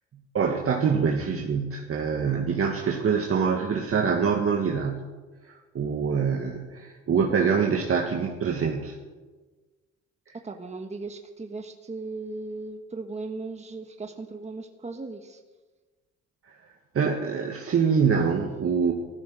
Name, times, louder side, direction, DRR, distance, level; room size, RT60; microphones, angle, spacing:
voice 1, 0.3-5.1 5.4-9.0 16.5-16.6 16.9-18.9, right 6 dB, 50° right, 1 dB, 1.8 m, -25 dB
voice 2, 10.4-15.4, right 3 dB, 20° right, 5 dB, 1.3 m, -37 dB
15.5 x 13.5 x 6.4 m, 1.3 s
cardioid pair, 90°, 30 cm